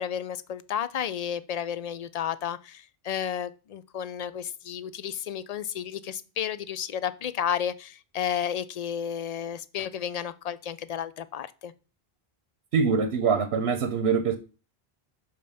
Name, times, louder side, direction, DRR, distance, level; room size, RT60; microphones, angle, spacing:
voice 1, 0.0-11.7, left 9 dB, 55° left, 0.5 m, -32 dB
voice 2, 12.7-14.4, right 5 dB, 85° right, 1.0 m, -24 dB
5.6 x 5.2 x 5.5 m
omnidirectional pair, 1.0 m